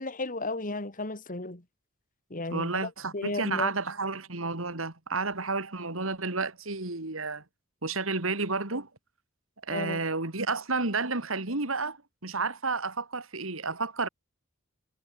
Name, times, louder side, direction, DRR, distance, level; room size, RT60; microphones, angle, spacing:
voice 1, 0.0-1.6 2.3-3.7 9.7-10.0, left 2 dB, 40° left, 2.8 m, -34 dB
voice 2, 2.5-7.4 7.8-8.9 9.7-12.0 12.2-14.1, right 3 dB, 80° right, 3.0 m, -31 dB
head